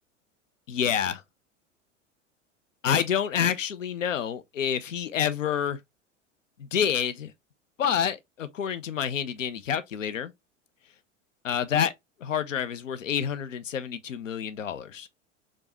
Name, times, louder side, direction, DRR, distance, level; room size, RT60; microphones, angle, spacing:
voice 1, 0.7-1.2 2.8-5.8 6.6-7.3 7.8-10.3 11.4-11.9 12.2-15.1, left 8 dB, 85° left, 0.6 m, -28 dB
4.8 x 2.3 x 2.9 m
figure-of-eight pair, 85°, 37 cm